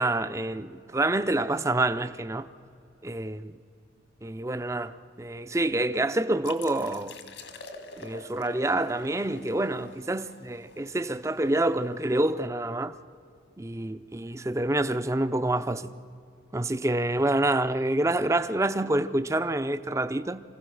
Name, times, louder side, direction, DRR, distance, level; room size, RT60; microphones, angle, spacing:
voice 1, 0.0-2.5 3.0-3.5 4.2-7.2 8.0-12.9 13.6-15.9 16.5-20.4, right 2 dB, 15° right, 0.5 m, -27 dB
sound 1, 6.4-12.0, left 4 dB, 75° left, 1.8 m, -47 dB
26.5 x 16.0 x 6.3 m
head